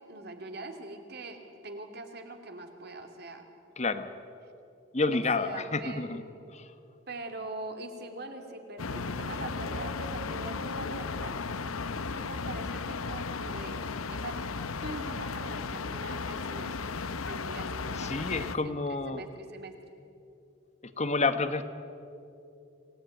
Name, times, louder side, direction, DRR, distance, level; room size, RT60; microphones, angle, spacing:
voice 1, 0.0-3.4 5.1-6.2 7.1-11.4 11.9-14.4 14.8-16.8 17.2-19.8, right 2 dB, 50° right, 5 dB, 2.7 m, -42 dB
voice 2, 3.8-4.1 4.9-6.2 6.5-6.6 18.0-19.2 20.8-21.6, left 3 dB, 35° left, 10 dB, 1.2 m, -29 dB
sound 1, 8.8-18.6, left 4 dB, 85° left, 0.8 m, -35 dB
27.5 x 17.5 x 9.2 m, 2.7 s
head